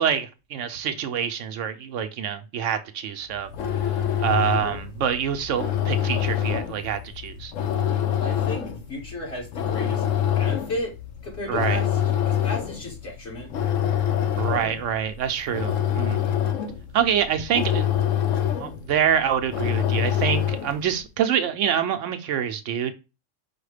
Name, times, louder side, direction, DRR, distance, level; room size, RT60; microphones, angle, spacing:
voice 1, 0.0-3.5 4.2-7.5 11.5-11.8 14.4-16.2 16.9-17.9 18.6-22.9, right 8 dB, 75° right, 0.9 m, -26 dB
sound 1, 3.3-20.9, left 10 dB, 90° left, 1.0 m, -26 dB
voice 2, 8.2-10.1 10.3-10.9 11.2-11.9 12.2-13.5, left 1 dB, 60° left, 2.4 m, -34 dB
4.9 x 2.2 x 4.8 m
omnidirectional pair, 1.3 m